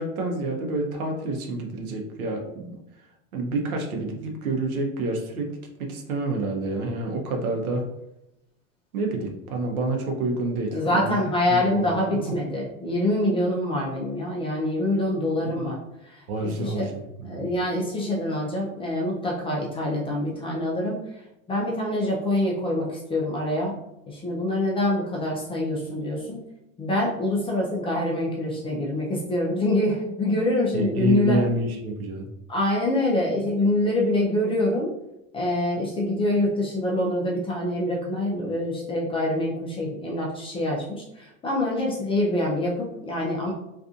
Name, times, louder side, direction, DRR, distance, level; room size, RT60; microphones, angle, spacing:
voice 1, 0.0-2.8 3.3-5.5 5.8-7.8 8.9-11.2 11.6-12.3 15.6-15.7 16.3-17.5 30.7-32.3, right 2 dB, 85° right, 2 dB, 0.8 m, -28 dB
voice 2, 10.7-15.8 16.1-16.2 16.6-16.9 17.2-21.0 21.5-23.7 24.1-26.4 26.8-31.4 32.5-34.9 35.3-43.5, left 1 dB, 15° left, -3 dB, 0.3 m, -25 dB
2.6 x 2.5 x 2.4 m, 0.85 s
hypercardioid pair, 105°, 42 cm